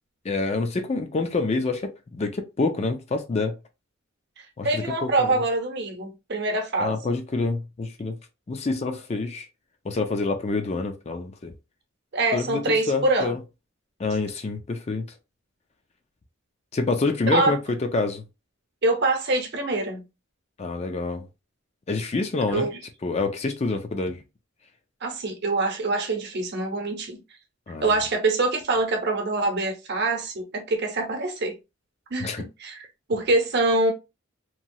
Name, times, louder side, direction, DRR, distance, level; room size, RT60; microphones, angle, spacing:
voice 1, 0.2-3.6 4.6-5.4 6.8-8.2 8.5-9.5 9.8-11.5 12.3-13.4 14.0-15.0 16.7-18.2 20.6-21.3 21.9-22.7 23.0-24.2 27.7-27.9 32.2-32.4, left 3 dB, 30° left, 0.4 m, -27 dB
voice 2, 4.4-7.0 12.1-13.3 17.3-17.6 18.8-20.0 22.5-22.8 25.0-27.2 27.8-31.6 32.1-32.8 33.1-33.9, right 2 dB, 55° right, 0.8 m, -25 dB
3.0 x 2.3 x 2.7 m
head